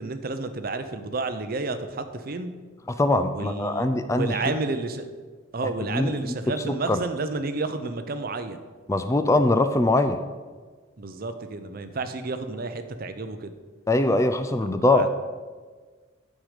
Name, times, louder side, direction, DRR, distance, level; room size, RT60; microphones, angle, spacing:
voice 1, 0.0-2.5 3.3-5.0 5.5-8.6 11.0-13.5 14.9-15.1, right 3 dB, 45° right, 9 dB, 0.6 m, -31 dB
voice 2, 3.0-4.3 5.8-6.1 6.9-7.0 8.9-10.2 13.9-15.1, left 2 dB, 15° left, 9 dB, 0.3 m, -22 dB
9.5 x 6.4 x 5.0 m, 1.4 s
head